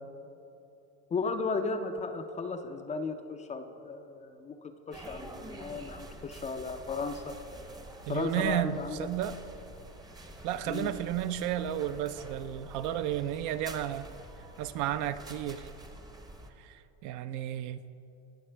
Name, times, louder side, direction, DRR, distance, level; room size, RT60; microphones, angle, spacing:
voice 1, 1.1-7.3 8.1-9.1 10.7-10.9, left 4 dB, 20° left, 7 dB, 0.4 m, -35 dB
sound 1, 4.9-16.5, right 1 dB, 10° right, 0.7 m, -48 dB
voice 2, 8.1-9.4 10.4-14.1 14.6-15.7 16.6-17.8, right 11 dB, 50° right, 12 dB, 0.5 m, -33 dB
18.5 x 6.6 x 3.3 m, 2.9 s
supercardioid pair, 120°, 38 cm